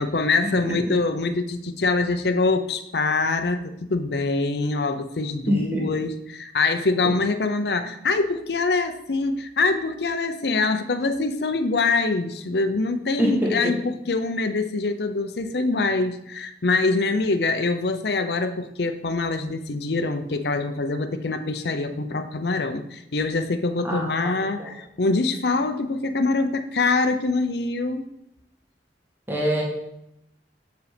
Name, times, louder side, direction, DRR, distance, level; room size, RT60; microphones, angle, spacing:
voice 1, 0.0-28.1, left 3 dB, 65° left, 9 dB, 0.7 m, -24 dB
voice 2, 5.5-5.8 13.2-13.7 23.8-24.1 24.6-24.7 29.3-29.6, equal, 10° right, -3 dB, 1.8 m, -24 dB
7.9 x 4.9 x 5.1 m, 0.81 s
head